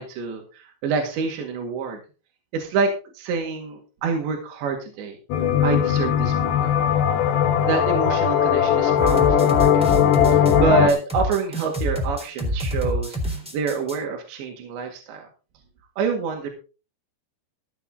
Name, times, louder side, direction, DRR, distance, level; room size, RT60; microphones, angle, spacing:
voice 1, 0.0-2.0 2.5-5.2 5.6-6.8 7.7-9.9 10.3-15.3 16.0-16.5, right 5 dB, 70° right, 2 dB, 4.3 m, -27 dB
sound 1, 5.3-10.9, left 9 dB, 70° left, 3.4 m, -19 dB
sound 2, 9.0-14.0, equal, ahead, 2.5 m, -27 dB
15.0 x 9.6 x 3.9 m, 0.33 s
omnidirectional pair, 5.4 m